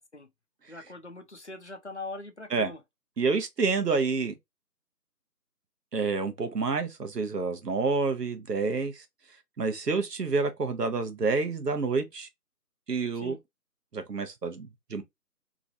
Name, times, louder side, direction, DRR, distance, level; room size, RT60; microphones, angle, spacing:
voice 1, 0.7-2.8 13.2-13.4, left 2 dB, 45° left, 0.6 m, -41 dB
voice 2, 3.2-4.4 5.9-9.0 9.6-12.3 12.9-13.4 13.9-15.0, right 4 dB, 75° right, 1.0 m, -28 dB
3.0 x 2.5 x 2.7 m
figure-of-eight pair, 175°, 49 cm